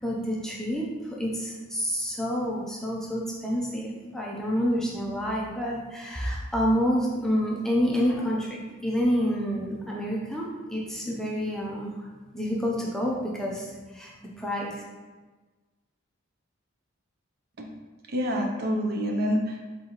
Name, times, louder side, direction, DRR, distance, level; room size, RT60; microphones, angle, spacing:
voice 1, 0.0-12.1 12.3-14.1 14.4-14.8, equal, ahead, -3 dB, 0.4 m, -28 dB
voice 2, 18.1-19.6, equal, 50° right, 2 dB, 0.5 m, -27 dB
4.0 x 3.7 x 2.9 m, 1.3 s
head